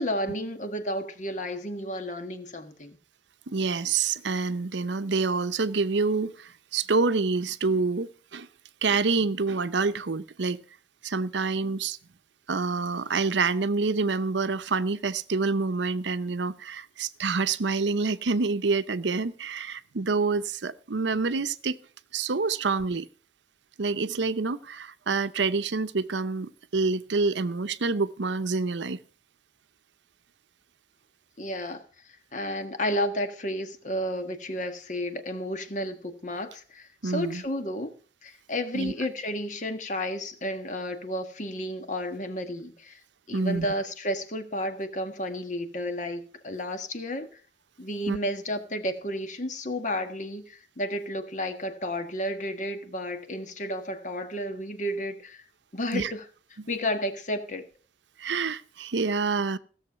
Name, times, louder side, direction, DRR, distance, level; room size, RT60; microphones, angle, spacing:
voice 1, 0.0-3.0 31.4-37.9 38.2-43.0 43.3-47.4 47.8-55.4 55.7-56.2 56.7-57.7, equal, 40° left, 1.5 m, -32 dB
voice 2, 3.5-8.5 8.8-10.6 11.0-12.0 12.5-21.8 22.1-23.1 23.8-29.0 37.0-37.4 38.7-38.9 43.3-43.7 48.1-48.2 55.9-56.1 56.6-56.7 58.2-59.6, right 4 dB, 80° right, 0.7 m, -27 dB
16.0 x 7.2 x 5.7 m
head